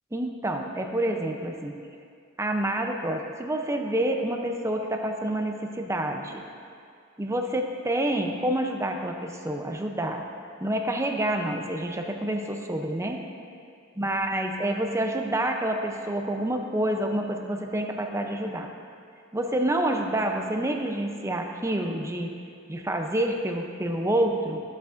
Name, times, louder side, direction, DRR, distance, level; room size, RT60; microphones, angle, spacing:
voice 1, 0.1-1.7 2.4-6.4 7.2-10.2 10.6-13.2 14.0-18.7 19.3-22.3 22.7-24.6, right 1 dB, 15° right, 3 dB, 0.6 m, -28 dB
14.5 x 8.2 x 2.6 m, 2.4 s
head